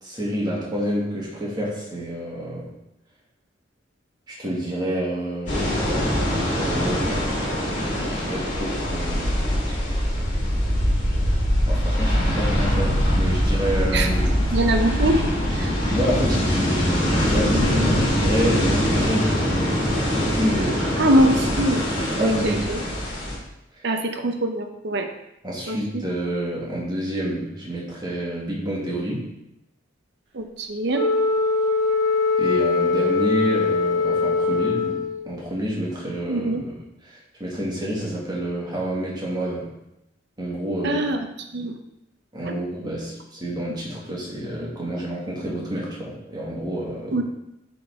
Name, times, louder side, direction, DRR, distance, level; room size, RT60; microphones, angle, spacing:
voice 1, 0.0-2.7 4.3-5.7 6.6-7.1 8.0-9.7 11.7-14.4 15.0-15.2 15.5-19.6 20.2-21.2 21.6-22.9 25.4-29.3 32.4-36.8 37.0-39.7 40.4-41.1 42.3-47.2, equal, 20° right, -5 dB, 1.9 m, -28 dB
sound 1, 5.5-23.4, equal, 40° left, 2.2 m, -23 dB
voice 2, 14.5-15.2 15.6-15.7 21.0-21.8 22.2-22.8 23.8-25.1 25.7-25.8 30.3-31.0 36.3-36.6 40.8-41.3 41.5-41.7 47.1-47.2, right 1 dB, 60° right, 5 dB, 0.7 m, -22 dB
Wind instrument woodwind instrument, 30.9-35.3, left 4 dB, 85° right, 1.3 m, -22 dB
8.6 x 3.9 x 3.5 m, 0.87 s
head